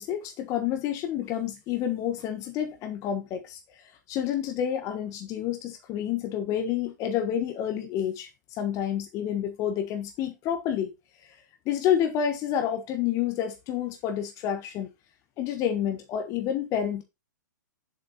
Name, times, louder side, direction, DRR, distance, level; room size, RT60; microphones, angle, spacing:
voice 1, 0.0-3.6 4.1-8.3 8.6-10.9 11.7-14.9 15.4-17.0, left 9 dB, 30° left, 1.3 m, -29 dB
7.4 x 5.1 x 4.2 m
hypercardioid pair, 115°, 10 cm